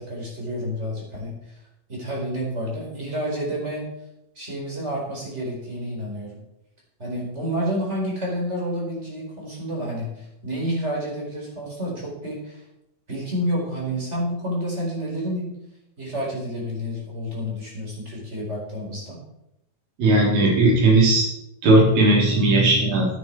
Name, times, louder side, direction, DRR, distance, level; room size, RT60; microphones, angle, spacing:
voice 1, 0.0-1.6 1.9-3.9 4.3-6.4 7.0-12.6 13.1-15.5 16.0-19.2, equal, 20° right, -3 dB, 4.5 m, -29 dB
voice 2, 20.0-21.3 21.6-23.1, right 2 dB, 80° right, -3 dB, 5.4 m, -17 dB
14.0 x 9.5 x 4.6 m, 0.84 s
omnidirectional pair, 4.1 m